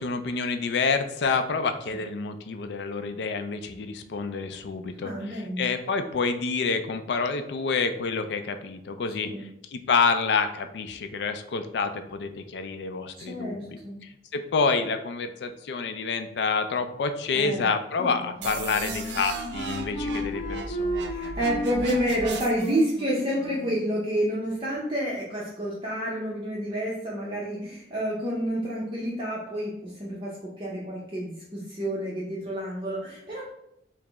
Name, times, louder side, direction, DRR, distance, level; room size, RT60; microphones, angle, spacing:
voice 1, 0.0-21.0, left 4 dB, 70° left, 8 dB, 0.4 m, -28 dB
voice 2, 5.0-5.7 9.2-9.4 13.2-14.0 17.3-17.7 18.0-18.1 21.0-33.4, equal, 30° right, -5 dB, 0.6 m, -29 dB
Wind instrument woodwind instrument, 18.0-23.9, equal, 35° left, 0.9 m, -34 dB
sound 1, 18.4-22.8, right 4 dB, 70° right, 0.4 m, -37 dB
4.8 x 2.0 x 3.4 m, 0.79 s
head